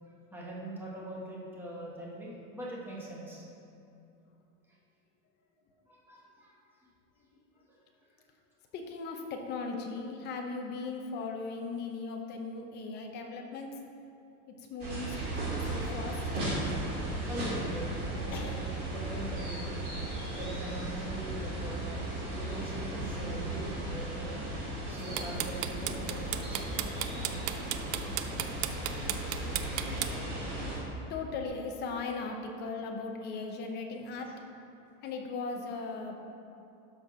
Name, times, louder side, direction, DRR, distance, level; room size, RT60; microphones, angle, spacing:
voice 1, 0.0-3.4 5.9-6.6 7.7-7.8 17.3-19.9 20.3-21.9 22.4-24.5 24.9-26.7, right 1 dB, 5° right, -5 dB, 1.1 m, -42 dB
voice 2, 8.7-13.8 14.5-15.2 15.6-16.3 18.3-18.6 30.7-34.3 35.0-36.2, left 4 dB, 30° left, 3 dB, 0.7 m, -38 dB
sound 1, 14.8-30.8, right 1 dB, 25° right, 2.2 m, -36 dB
sound 2, 25.0-30.1, right 14 dB, 65° right, 0.5 m, -33 dB
12.5 x 4.5 x 4.9 m, 2.6 s
cardioid pair, 180°, 37 cm